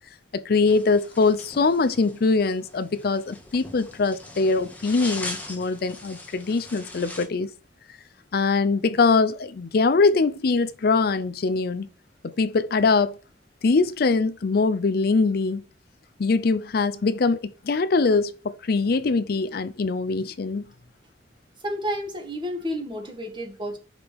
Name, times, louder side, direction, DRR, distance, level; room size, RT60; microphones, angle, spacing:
voice 1, 0.3-7.5 8.3-11.9 12.2-13.2 13.6-15.6 16.2-20.6, left 4 dB, 55° left, 0.5 m, -22 dB
sound 1, 0.7-7.3, left 2 dB, 10° left, 1.2 m, -40 dB
voice 2, 21.6-23.8, equal, 25° right, 1.6 m, -31 dB
5.2 x 4.9 x 6.2 m
head